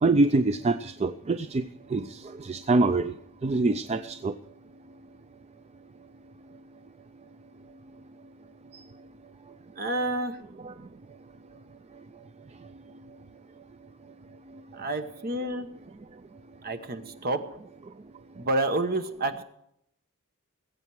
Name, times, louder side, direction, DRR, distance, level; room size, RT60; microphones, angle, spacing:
voice 1, 0.0-1.6 1.9-3.1 3.4-4.3 10.6-10.7, right 3 dB, 30° right, 11 dB, 0.4 m, -25 dB
voice 2, 9.8-10.3 14.7-15.7 16.6-17.4 18.4-19.4, right 2 dB, 45° right, 8 dB, 1.1 m, -29 dB
20.5 x 8.3 x 4.7 m, 0.74 s
head